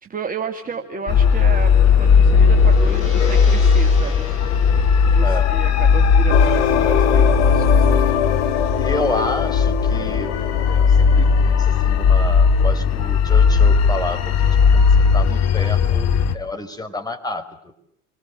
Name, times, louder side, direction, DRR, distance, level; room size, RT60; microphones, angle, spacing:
voice 1, 0.0-4.3 5.1-8.0, right 5 dB, 20° right, 3 dB, 2.3 m, -32 dB
Gong, 0.6-9.0, left 3 dB, 80° left, 6.2 m, -35 dB
sound 1, 1.1-16.3, left 5 dB, 40° left, 2.5 m, -16 dB
voice 2, 5.2-5.6 8.7-10.4 10.7-14.3 14.7-17.5, left 2 dB, 10° left, 7 dB, 4.8 m, -29 dB
sound 2, 6.3-12.2, left 8 dB, 60° left, 3.0 m, -24 dB
29.5 x 24.5 x 7.1 m, 0.75 s
figure-of-eight pair, 75°, 40 cm